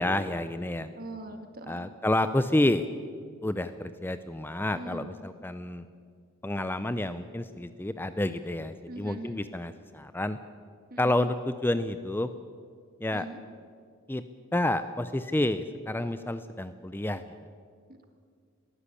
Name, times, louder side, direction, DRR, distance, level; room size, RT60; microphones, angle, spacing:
voice 1, 0.0-0.9 1.7-2.9 3.4-5.8 6.4-10.4 11.0-12.3 13.0-13.3 14.1-14.2 14.5-17.2, left 1 dB, 10° left, 11 dB, 0.5 m, -29 dB
voice 2, 1.0-1.9 4.7-5.1 8.9-9.4 10.9-11.1 13.1-13.4 17.9-18.0, right 1 dB, 45° right, 6 dB, 2.0 m, -41 dB
22.0 x 15.5 x 8.4 m, 2.1 s
head